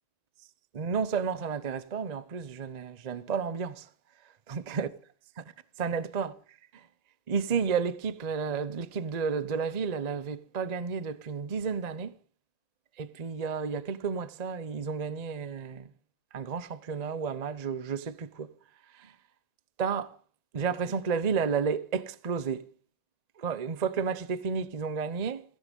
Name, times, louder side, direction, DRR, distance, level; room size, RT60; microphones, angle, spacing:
voice 1, 0.7-3.9 4.5-4.9 5.4-5.5 5.8-6.9 7.3-12.2 13.0-15.9 16.3-18.5 18.9-19.1 19.8-20.2 20.5-22.6 23.4-25.4, right 6 dB, 85° right, 0.3 m, -32 dB
16.5 x 15.5 x 5.3 m
omnidirectional pair, 2.2 m